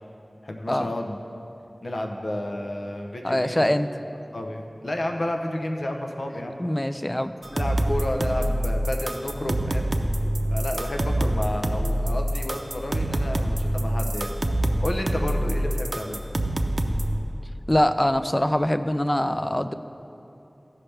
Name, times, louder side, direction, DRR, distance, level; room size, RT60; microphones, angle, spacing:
voice 1, 0.4-1.2 1.8-3.7 4.3-6.6 7.4-9.9 10.5-14.3 14.8-16.2, left 1 dB, 90° left, 2 dB, 0.7 m, -31 dB
voice 2, 3.2-3.9 6.6-7.3 17.7-19.7, left 1 dB, 25° left, 9 dB, 0.4 m, -23 dB
sound 1, 7.4-17.2, right 1 dB, 65° right, 0.5 m, -25 dB
15.0 x 5.8 x 3.3 m, 3.0 s
wide cardioid pair, 45°, 0 cm